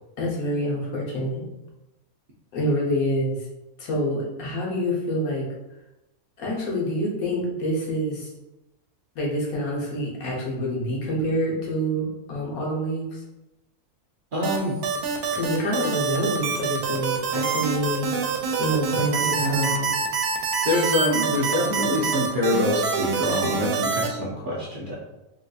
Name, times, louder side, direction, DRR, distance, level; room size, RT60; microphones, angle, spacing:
voice 1, 0.2-1.4 2.5-3.4 3.8-5.5 6.4-8.3 9.1-13.2 15.3-18.1 18.6-19.9, equal, 70° left, -3 dB, 1.3 m, -27 dB
voice 2, 14.3-14.8 17.4-17.6 19.2-19.7 20.6-25.0, left 1 dB, 65° right, -5 dB, 0.5 m, -26 dB
sound 1, 14.4-24.1, right 5 dB, 90° right, 1.1 m, -25 dB
3.8 x 2.6 x 2.4 m, 0.96 s
omnidirectional pair, 1.6 m